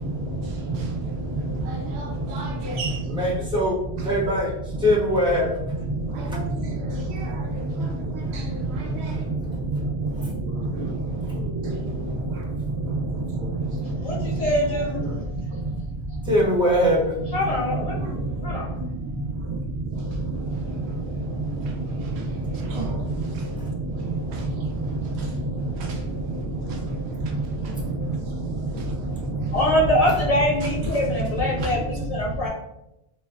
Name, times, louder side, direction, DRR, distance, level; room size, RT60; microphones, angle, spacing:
voice 1, 0.0-3.4 4.0-4.1 4.8-4.9 5.8-16.3 17.4-29.9 30.5-32.5, right 2 dB, 90° right, 0.9 m, -29 dB
voice 2, 3.1-3.7 4.0-5.6 6.3-6.4 10.2-10.3 16.2-17.1, equal, 5° right, 0.8 m, -22 dB
voice 3, 14.0-15.0 17.3-18.8 29.5-32.5, left 1 dB, 40° left, 0.8 m, -24 dB
2.9 x 2.3 x 2.2 m
omnidirectional pair, 1.1 m